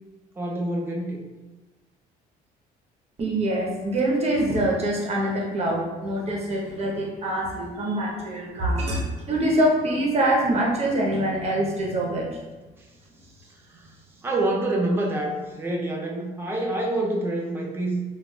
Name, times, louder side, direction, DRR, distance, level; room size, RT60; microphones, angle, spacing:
voice 1, 0.4-1.2 14.2-18.0, right 1 dB, 15° right, -1 dB, 0.5 m, -26 dB
voice 2, 3.2-12.4, right 1 dB, 40° right, -2 dB, 0.8 m, -24 dB
3.9 x 2.4 x 2.3 m, 1.2 s
cardioid pair, 110°, 17 cm